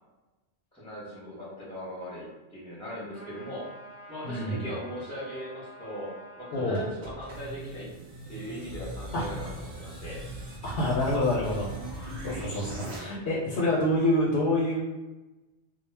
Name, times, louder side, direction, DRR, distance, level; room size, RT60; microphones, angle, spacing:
voice 1, 0.7-3.7 4.1-7.9 8.3-10.2, equal, 5° left, -7 dB, 0.6 m, -39 dB
sound 1, 3.1-7.0, right 1 dB, 40° left, 0.7 m, -48 dB
voice 2, 4.2-4.7 6.5-6.8 9.1-9.5 10.6-11.7 12.0-14.8, left 1 dB, 75° left, -4 dB, 0.8 m, -27 dB
sound 2, 6.7-13.0, right 1 dB, 45° right, 0.7 m, -40 dB
2.1 x 2.0 x 3.2 m, 1.1 s
omnidirectional pair, 1.2 m